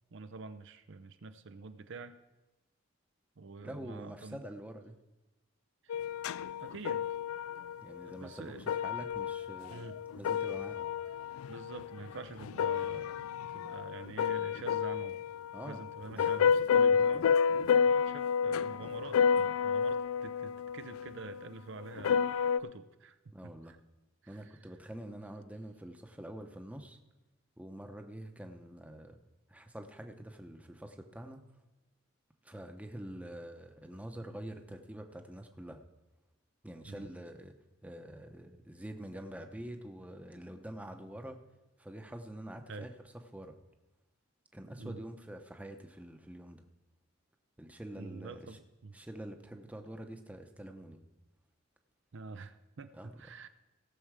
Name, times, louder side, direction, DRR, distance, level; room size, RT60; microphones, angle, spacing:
voice 1, 0.1-2.2 3.4-4.4 5.8-6.0 6.6-7.1 8.0-8.6 9.7-10.0 11.5-15.2 15.6-23.8 24.2-24.7 36.8-37.1 42.7-42.9 44.6-45.0 48.0-48.9 52.1-53.5, right 3 dB, 60° right, 10 dB, 0.6 m, -47 dB
voice 2, 3.6-4.9 7.8-9.9 10.2-10.9 15.5-15.8 16.2-16.3 18.8-18.9 23.3-23.8 24.3-27.0 27.6-29.2 29.5-31.5 32.4-35.8 36.6-37.5 37.8-41.4 41.8-42.9 43.3-43.5 44.5-46.7 47.6-48.6 48.9-51.0 52.9-53.2, right 1 dB, 5° right, 5 dB, 0.8 m, -46 dB
sound 1, 5.9-8.2 8.5-21.4 21.8-22.6, left 7 dB, 90° left, 0.3 m, -30 dB
17.5 x 6.9 x 4.8 m, 1.1 s
head